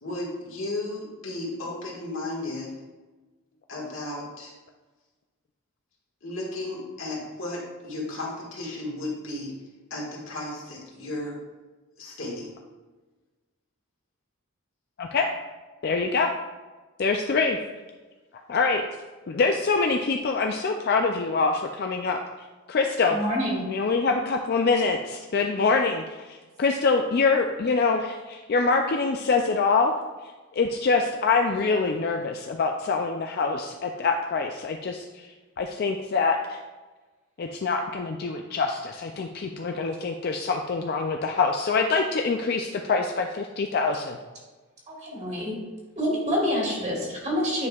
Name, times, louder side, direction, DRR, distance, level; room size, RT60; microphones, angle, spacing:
voice 1, 0.0-2.7 3.7-4.5 6.2-9.5 9.9-11.4 12.0-12.5, left 2 dB, 65° left, -3 dB, 1.7 m, -34 dB
voice 2, 15.8-16.3 17.0-17.6 18.5-18.8 19.3-22.2 22.7-23.2 23.7-29.9 30.5-35.3 35.6-36.6 37.4-44.2, left 4 dB, 45° left, 3 dB, 0.3 m, -25 dB
voice 3, 23.0-23.6 45.0-45.5 46.0-47.7, equal, 30° right, -3 dB, 1.7 m, -27 dB
9.2 x 5.3 x 2.3 m, 1.3 s
head